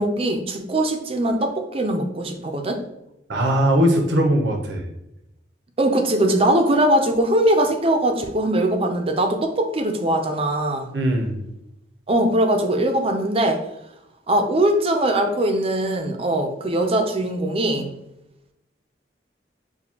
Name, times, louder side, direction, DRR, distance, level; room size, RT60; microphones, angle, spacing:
voice 1, 0.0-2.8 5.8-10.9 12.1-13.6 14.3-17.9, right 1 dB, 30° right, 5 dB, 0.5 m, -21 dB
voice 2, 3.3-4.9 10.9-11.4, equal, 75° right, 2 dB, 0.8 m, -20 dB
6.8 x 2.3 x 2.8 m, 0.88 s
head